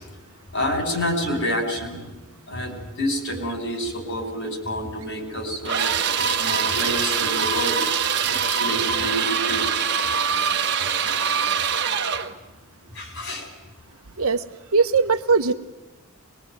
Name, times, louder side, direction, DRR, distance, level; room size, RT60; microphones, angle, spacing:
voice 1, 0.5-2.1 2.5-9.8 12.9-13.5, equal, 55° left, 5 dB, 5.6 m, -28 dB
sound 1, 5.7-12.3, right 7 dB, 50° right, 1.4 m, -23 dB
voice 2, 14.7-15.5, right 4 dB, 75° right, 10 dB, 1.1 m, -19 dB
22.5 x 22.5 x 9.3 m, 1.1 s
head